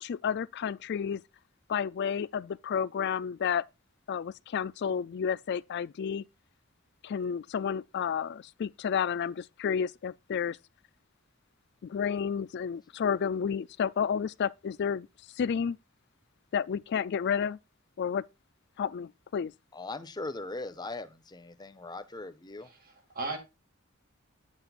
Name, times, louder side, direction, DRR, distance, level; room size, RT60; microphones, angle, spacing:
voice 1, 0.0-1.2 1.7-3.6 4.1-6.2 7.0-10.6 11.8-15.1 15.4-15.8 16.5-17.6 18.0-18.2 18.8-19.5, left 7 dB, 55° left, 0.3 m, -31 dB
voice 2, 19.7-22.7, left 2 dB, 20° left, 0.7 m, -39 dB
voice 3, 22.6-23.4, right 3 dB, 45° right, 2.0 m, -37 dB
8.3 x 8.0 x 2.4 m
head